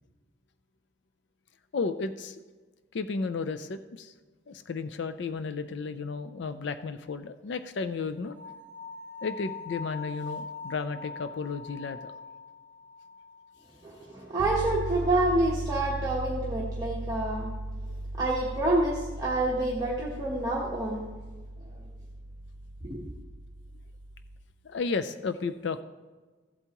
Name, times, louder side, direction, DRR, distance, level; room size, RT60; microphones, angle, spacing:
voice 1, 1.7-2.4 2.9-4.1 4.5-8.4 9.2-12.1 24.6-25.8, left 4 dB, 60° left, 10 dB, 0.4 m, -33 dB
sound 1, 8.3-13.4, left 4 dB, 40° left, 3.0 m, -42 dB
voice 2, 13.8-17.5 18.2-21.0 22.8-23.1, right 2 dB, 20° right, -5 dB, 1.1 m, -28 dB
sound 2, 14.4-24.5, right 2 dB, 65° right, 0.4 m, -38 dB
14.5 x 8.1 x 3.0 m, 1.3 s
head